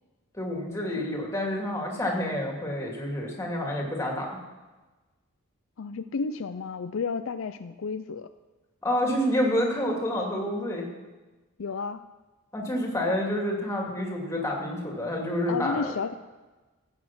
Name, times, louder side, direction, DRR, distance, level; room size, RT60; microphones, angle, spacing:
voice 1, 0.3-4.3 8.8-10.8 12.5-15.9, left 1 dB, 15° left, -1 dB, 2.4 m, -28 dB
voice 2, 5.8-8.3 11.6-12.0 15.5-16.1, left 5 dB, 65° left, 10 dB, 0.4 m, -32 dB
15.0 x 8.4 x 6.0 m, 1.2 s
head